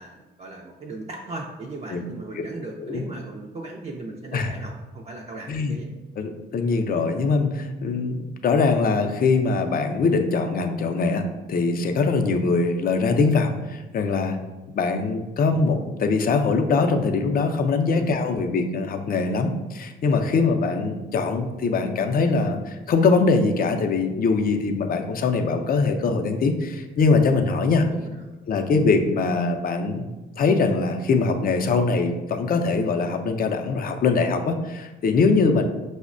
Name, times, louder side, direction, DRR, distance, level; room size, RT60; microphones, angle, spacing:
voice 1, 0.0-5.9 17.9-18.2 27.6-28.2, right 2 dB, 35° right, -2 dB, 0.4 m, -37 dB
voice 2, 6.2-11.2 11.5-14.4 14.7-27.9 28.5-30.1 30.4-35.6, left 4 dB, 45° left, 6 dB, 0.4 m, -22 dB
5.1 x 2.1 x 2.4 m, 1.1 s
cardioid pair, 90°, 20 cm